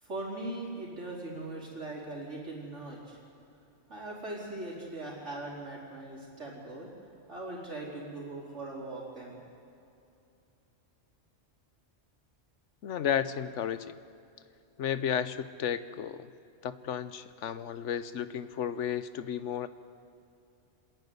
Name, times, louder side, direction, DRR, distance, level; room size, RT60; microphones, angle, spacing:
voice 1, 0.0-3.2 3.9-6.9 7.3-9.4, right 2 dB, 80° right, -4 dB, 4.6 m, -40 dB
voice 2, 12.8-14.0 14.8-16.3 16.6-19.7, left 9 dB, 85° left, 13 dB, 1.1 m, -33 dB
26.5 x 11.0 x 9.6 m, 2.6 s
omnidirectional pair, 1.2 m